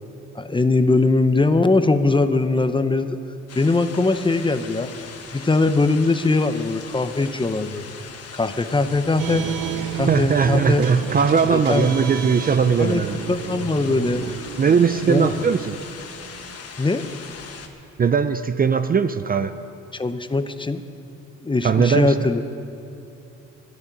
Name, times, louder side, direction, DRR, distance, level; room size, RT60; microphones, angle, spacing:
voice 1, 0.3-3.2 3.5-4.9 5.3-7.9 8.3-9.5 10.0-10.8 11.5-11.9 12.8-14.3 15.1-15.4 16.8-17.0 19.9-20.8 21.4-22.4, left 3 dB, 15° left, 10 dB, 0.7 m, -21 dB
sound 1, 3.5-17.7, left 6 dB, 55° left, 1.4 m, -40 dB
sound 2, 9.2-16.5, right 10 dB, 80° right, 0.7 m, -31 dB
voice 2, 10.1-13.2 14.6-15.7 18.0-19.5 21.6-22.1, right 6 dB, 30° right, 10 dB, 0.5 m, -19 dB
12.0 x 11.0 x 9.0 m, 2.7 s
cardioid pair, 90°, 30 cm